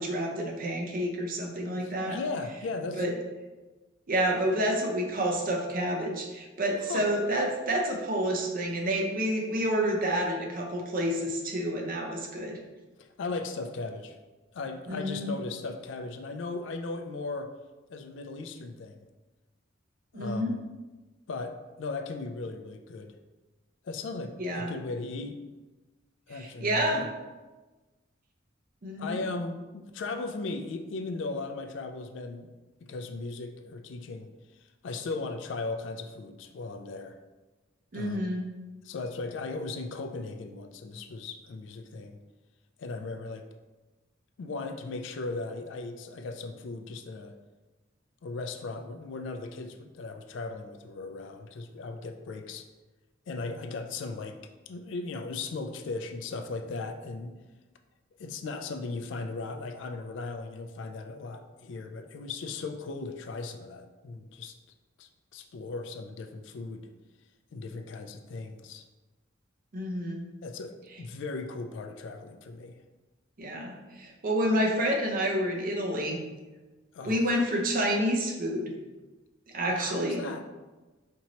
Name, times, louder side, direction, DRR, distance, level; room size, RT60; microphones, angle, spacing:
voice 1, 0.0-2.2 3.0-3.1 4.1-12.6 14.9-15.3 20.1-20.5 24.4-24.7 26.3-27.0 28.8-29.2 37.9-38.5 69.7-70.2 73.4-76.2 77.0-78.7 79.5-80.2, equal, 45° right, 1 dB, 0.6 m, -29 dB
voice 2, 1.6-3.1 6.8-7.1 13.0-14.2 14.5-17.5 17.9-19.0 20.1-20.6 21.3-23.1 23.8-25.4 26.3-27.1 29.0-32.5 32.8-37.2 37.9-38.4 38.8-42.2 42.8-43.5 44.4-47.4 48.2-52.7 53.3-54.4 54.7-57.4 58.2-64.6 65.0-66.9 67.5-68.9 70.4-72.7 76.9-77.6 79.7-80.5, left 3 dB, 65° left, 7 dB, 0.3 m, -37 dB
4.3 x 2.9 x 2.8 m, 1.2 s
head